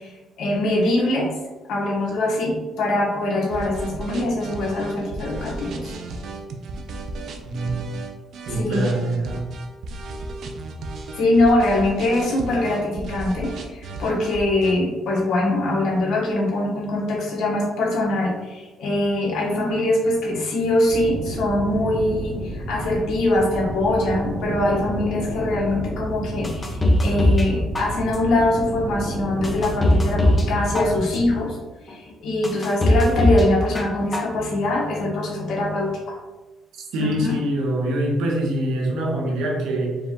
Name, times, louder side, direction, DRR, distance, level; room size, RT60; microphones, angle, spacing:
voice 1, 0.0-1.4 1.7-5.9 8.5-8.9 11.1-31.6 31.8-36.2 37.0-37.3, left 1 dB, 65° left, -3 dB, 1.3 m, -23 dB
sound 1, 3.5-14.7, right 2 dB, 55° right, 0.5 m, -34 dB
voice 2, 7.4-7.8 8.5-9.5 36.9-40.0, right 1 dB, 80° right, 0 dB, 1.0 m, -24 dB
sound 2, 20.9-31.4, right 1 dB, 35° right, 1.0 m, -31 dB
sound 3, 26.4-27.5 27.7-28.4 28.9-29.0 29.4-30.5 30.7-31.4 31.9-32.0 32.4-33.5 33.7-34.4 34.7-34.8, left 1 dB, 15° left, 0.5 m, -20 dB
4.8 x 2.4 x 3.7 m, 1.2 s
cardioid pair, 140°, 0 cm